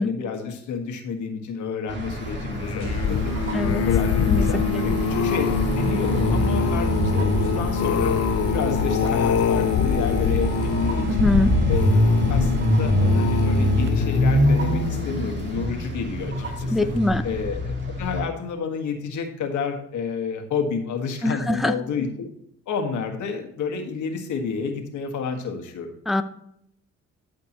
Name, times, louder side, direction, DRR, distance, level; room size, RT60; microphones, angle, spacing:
voice 1, 0.0-3.3 3.6-8.1 8.5-11.3 11.7-11.9 12.3-16.3 16.6-16.9 17.2-22.3 22.7-25.9, left 5 dB, 75° left, 4 dB, 1.6 m, -30 dB
sound 1, 1.9-18.2, equal, 35° right, 2.5 m, -25 dB
sound 2, 2.5-15.8 16.4-16.7 17.0-17.1, left 9 dB, 55° left, 0.5 m, -25 dB
sound 3, 2.8-14.2, right 11 dB, 60° right, 0.6 m, -31 dB
voice 2, 11.1-11.5 16.7-17.2 21.2-21.7 26.1-26.2, left 1 dB, ahead, 8 dB, 0.5 m, -22 dB
13.0 x 5.2 x 3.0 m, 0.76 s
cardioid pair, 90°, 30 cm